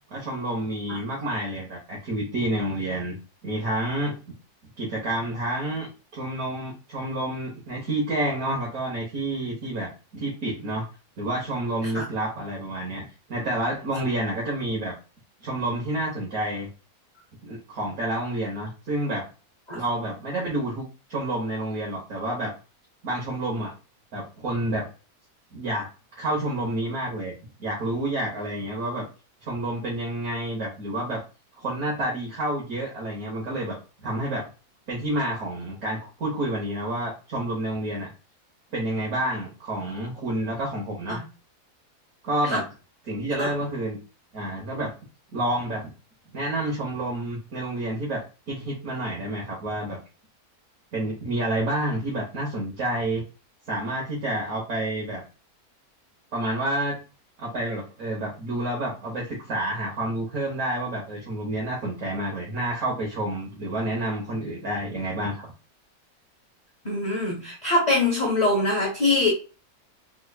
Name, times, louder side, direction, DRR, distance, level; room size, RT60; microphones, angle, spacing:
voice 1, 0.1-3.2 3.4-4.2 4.8-10.9 11.2-13.0 13.3-14.9 15.4-16.7 17.4-19.2 19.7-22.5 23.0-23.7 24.1-24.9 25.5-25.9 26.2-27.3 27.6-29.1 29.4-31.2 31.6-34.5 34.9-38.1 38.7-41.2 42.2-42.7 43.1-44.0 44.3-44.9 45.3-45.9 46.3-50.0 50.9-53.2 53.7-55.2 56.3-57.0 57.4-65.5, right 1 dB, 70° right, -3 dB, 1.5 m, -29 dB
voice 2, 66.8-69.3, left 2 dB, 35° left, -3 dB, 1.0 m, -23 dB
3.8 x 3.2 x 2.3 m, 0.33 s
omnidirectional pair, 1.6 m